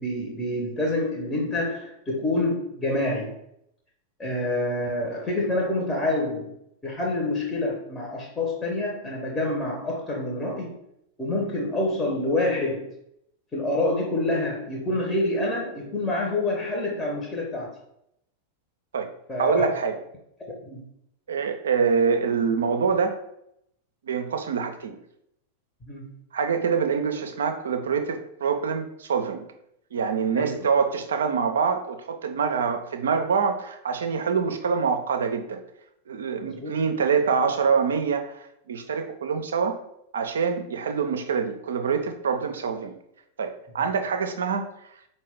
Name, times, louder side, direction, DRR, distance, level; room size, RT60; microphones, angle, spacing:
voice 1, 0.0-3.3 4.2-6.5 6.8-10.7 11.2-12.9 13.5-17.8 19.3-19.7 20.4-20.8 25.9-26.1 30.3-30.7 36.4-36.7 43.8-43.9, left 1 dB, 15° left, -2 dB, 0.7 m, -27 dB
voice 2, 19.4-19.9 21.3-23.2 24.0-24.9 26.3-29.4 29.9-35.6 36.1-39.8 40.1-42.9 43.4-44.7, right 6 dB, 65° right, 8 dB, 0.4 m, -25 dB
4.4 x 2.2 x 3.4 m, 0.76 s
figure-of-eight pair, 90°, 0 cm